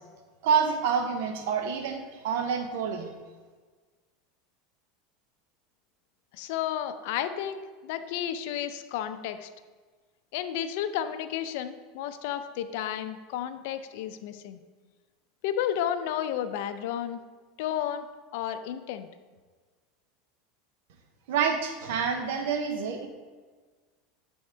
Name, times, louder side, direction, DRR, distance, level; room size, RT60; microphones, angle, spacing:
voice 1, 0.4-3.1 21.3-23.1, right 6 dB, 75° right, 4 dB, 0.6 m, -27 dB
voice 2, 6.3-9.5 10.3-14.6 15.4-17.2 17.6-18.1 18.3-19.1, left 10 dB, 70° left, 10 dB, 0.4 m, -32 dB
7.6 x 3.5 x 4.4 m, 1.4 s
supercardioid pair, 120°, 0 cm